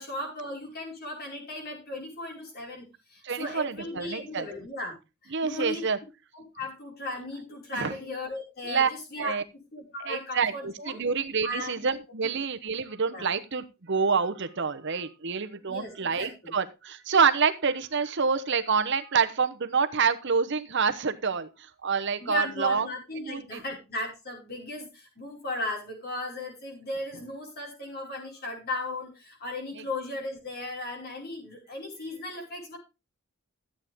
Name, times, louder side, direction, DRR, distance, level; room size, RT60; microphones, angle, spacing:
voice 1, 0.0-5.0 5.2-5.8 6.3-11.0 11.4-11.9 13.1-13.3 15.7-16.5 22.2-32.8, left 1 dB, 45° left, 1 dB, 5.3 m, -36 dB
voice 2, 3.2-4.5 5.3-6.0 7.7-7.9 8.6-8.9 9.2-9.4 10.0-21.5 21.8-22.9 23.2-23.6, right 5 dB, 55° right, 10 dB, 0.9 m, -27 dB
14.0 x 8.6 x 3.6 m, 0.28 s
head